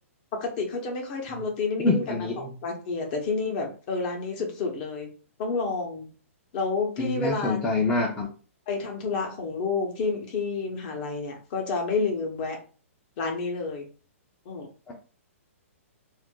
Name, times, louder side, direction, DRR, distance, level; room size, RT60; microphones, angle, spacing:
voice 1, 0.4-5.1 5.4-6.1 6.5-7.6 8.7-12.6 13.2-13.9 14.4-14.7, left 4 dB, 40° left, 2 dB, 0.9 m, -29 dB
voice 2, 1.8-2.5 7.0-8.3 14.9-15.0, left 3 dB, 10° left, -2 dB, 0.6 m, -26 dB
2.5 x 2.1 x 3.6 m, 0.37 s
hypercardioid pair, 140°, 8 cm